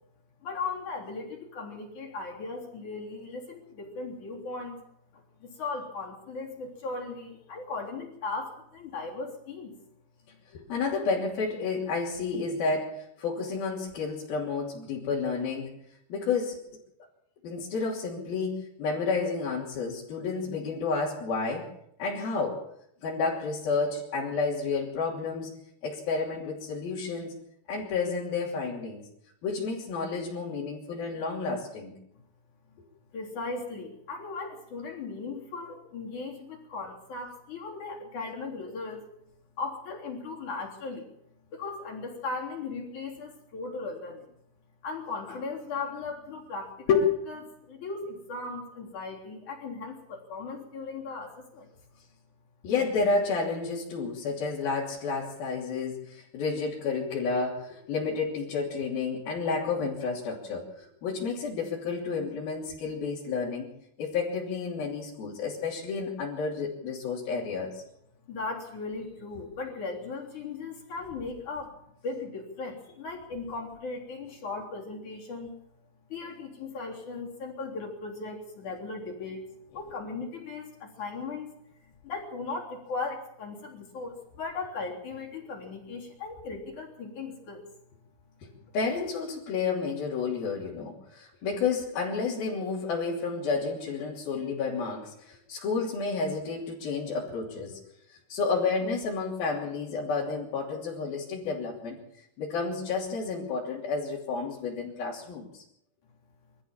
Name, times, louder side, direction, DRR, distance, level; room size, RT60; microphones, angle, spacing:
voice 1, 0.4-4.8 5.1-9.7 33.1-39.1 39.6-41.1 41.5-44.3 44.8-51.7 68.3-71.7 72.0-75.5 76.1-81.5 81.8-87.6, left 3 dB, 55° left, -1 dB, 4.9 m, -37 dB
voice 2, 10.5-15.7 16.1-16.6 17.4-21.7 22.0-22.6 23.0-25.5 25.8-27.3 27.7-29.1 29.4-31.9 46.9-47.1 52.6-63.7 64.0-67.8 88.7-97.8 98.1-102.0 102.4-105.6, left 4 dB, 85° left, -6 dB, 5.0 m, -30 dB
26.0 x 14.0 x 7.4 m, 0.76 s
omnidirectional pair, 4.1 m